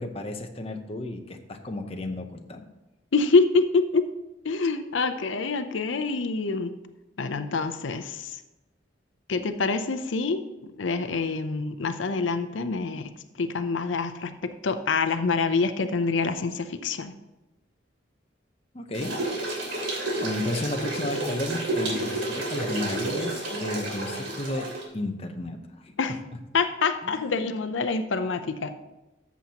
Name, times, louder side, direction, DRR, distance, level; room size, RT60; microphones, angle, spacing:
voice 1, 0.0-2.7 18.7-19.2 20.2-24.7 24.9-25.9 27.0-27.3, left 1 dB, 30° left, 5 dB, 0.8 m, -33 dB
voice 2, 3.1-4.1 4.4-6.7 7.2-8.4 9.3-10.4 10.8-13.1 13.4-17.1 26.0-26.2 26.5-28.7, left 4 dB, 85° left, 9 dB, 0.6 m, -26 dB
sound 1, 18.9-24.8, right 2 dB, 85° right, 2.8 m, -30 dB
13.5 x 7.1 x 2.9 m, 1.0 s
head